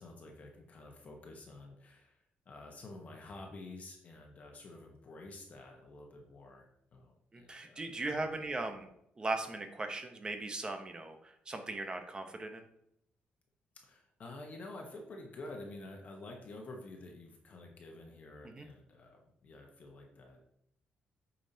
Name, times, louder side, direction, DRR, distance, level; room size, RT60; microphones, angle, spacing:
voice 1, 0.0-8.5 13.8-20.4, left 2 dB, 40° left, 1 dB, 1.2 m, -50 dB
voice 2, 7.3-8.9 9.2-12.7 18.4-18.7, right 2 dB, 20° right, 6 dB, 0.9 m, -38 dB
8.4 x 5.5 x 2.8 m, 0.74 s
cardioid pair, 140°, 4 cm